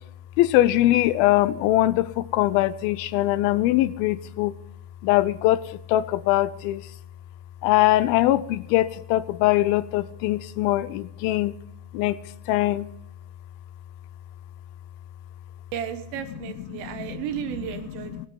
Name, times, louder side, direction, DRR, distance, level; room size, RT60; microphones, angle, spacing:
voice 1, 0.4-4.5 5.0-6.8 7.6-11.6 11.9-12.2 12.5-12.9 16.8-17.2 17.9-18.3, left 15 dB, 85° left, 17 dB, 2.4 m, -22 dB
voice 2, 15.7-18.3, right 10 dB, 80° right, 8 dB, 3.0 m, -33 dB
20.5 x 9.5 x 3.8 m, 0.80 s
omnidirectional pair, 4.2 m